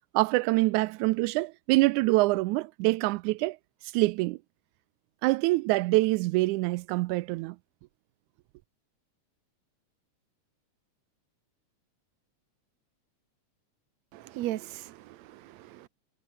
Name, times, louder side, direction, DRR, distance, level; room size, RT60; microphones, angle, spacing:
voice 1, 0.1-3.6 3.9-4.4 5.2-7.6, right 21 dB, 90° right, 2.0 m, -25 dB
voice 2, 14.1-15.9, right 14 dB, 70° right, 2.2 m, -37 dB
omnidirectional pair, 3.4 m